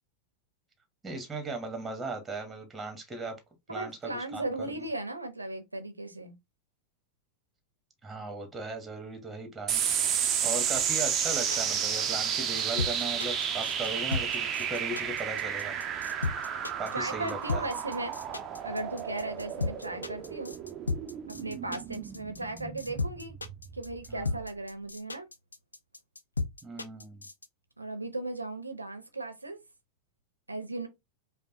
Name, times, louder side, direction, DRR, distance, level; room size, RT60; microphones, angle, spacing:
voice 1, 1.0-3.4 3.7-4.4 8.0-9.9 10.4-15.8 16.8-17.7 21.3-21.6 24.1-24.4 26.6-27.3, right 2 dB, 10° right, 1.3 m, -38 dB
voice 2, 3.7-6.4 16.9-18.1 18.6-20.6 21.3-23.3 23.7-25.3 27.8-29.6 30.5-30.9, right 2 dB, 85° right, 0.8 m, -36 dB
sound 1, 9.7-24.5, right 8 dB, 30° right, 0.6 m, -32 dB
sound 2, 10.7-27.5, left 3 dB, 80° left, 0.4 m, -34 dB
5.1 x 2.2 x 2.8 m
figure-of-eight pair, 90°, 0 cm